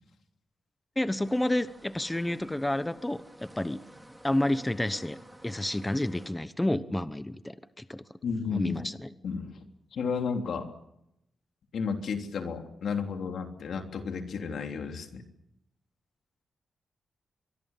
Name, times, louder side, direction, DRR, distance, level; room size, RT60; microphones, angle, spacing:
voice 1, 1.0-3.8 4.2-5.2 5.4-8.0 8.6-8.9, left 1 dB, 10° left, 13 dB, 1.0 m, -30 dB
sound 1, 1.2-6.3, right 1 dB, 5° right, 3.8 m, -51 dB
voice 2, 8.2-8.8 9.2-9.6 9.9-10.7 11.7-15.2, left 5 dB, 80° left, 4 dB, 3.4 m, -32 dB
24.5 x 23.5 x 7.4 m, 0.81 s
cardioid pair, 90°, 0 cm